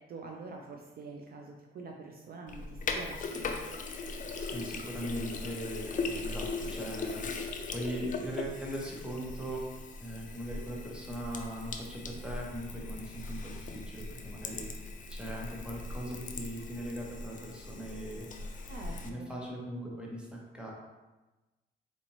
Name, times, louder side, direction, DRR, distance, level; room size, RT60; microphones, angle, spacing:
voice 1, 0.0-3.6 18.7-19.4, right 3 dB, 50° right, 1 dB, 0.5 m, -46 dB
Sink (filling or washing), 2.5-19.1, left 3 dB, 40° left, 0.4 m, -39 dB
voice 2, 4.4-18.3 19.0-20.7, equal, 5° right, -3 dB, 0.9 m, -40 dB
4.1 x 2.6 x 3.0 m, 1.1 s
cardioid pair, 90°, 20 cm